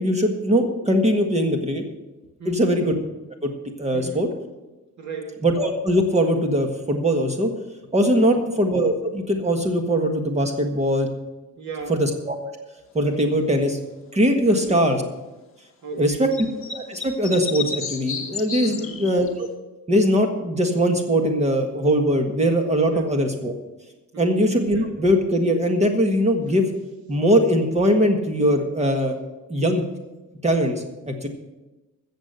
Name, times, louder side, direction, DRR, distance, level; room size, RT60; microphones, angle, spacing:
voice 1, 0.0-1.8 2.4-2.9 3.4-3.5 3.8-4.3 5.4-7.5 7.9-11.1 11.9-12.3 12.9-13.8 14.1-15.0 16.0-16.3 16.7-19.3 19.9-23.5 24.2-26.7 27.1-29.2 29.5-29.8 30.4-31.3, equal, 20° right, 4 dB, 1.6 m, -21 dB
voice 2, 2.4-2.7 3.9-4.4 5.0-5.4 8.2-8.4 11.6-12.0 14.5-14.9 15.8-16.3 18.6-19.1 22.9-23.2 24.1-24.5 24.7-24.9, right 4 dB, 55° right, 2 dB, 2.5 m, -36 dB
sound 1, 16.3-19.5, left 5 dB, 35° left, 1.5 m, -31 dB
14.5 x 7.5 x 6.6 m, 1.1 s
wide cardioid pair, 180°, 35 cm